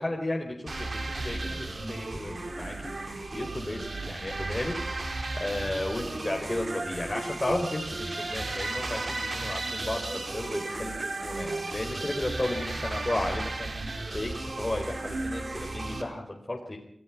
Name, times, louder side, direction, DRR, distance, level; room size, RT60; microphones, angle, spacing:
voice 1, 0.0-16.8, left 1 dB, 30° left, 1 dB, 4.4 m, -34 dB
sound 1, 0.7-16.0, right 2 dB, 55° right, 5.3 m, -34 dB
28.5 x 19.0 x 6.0 m, 0.71 s
wide cardioid pair, 80°, 0 cm